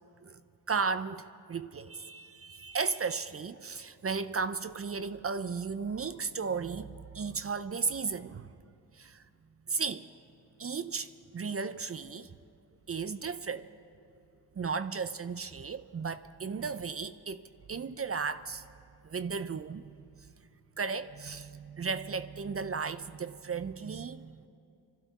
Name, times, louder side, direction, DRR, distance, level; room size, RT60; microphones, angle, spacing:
voice 1, 0.7-8.5 8.9-9.2 9.7-10.0 10.6-12.3 12.9-13.7 14.6-17.4 17.7-18.6 19.0-20.3 20.8-24.5, right 5 dB, 35° right, 0.5 m, -35 dB
25.5 x 12.5 x 4.1 m
cardioid pair, 65°, 39 cm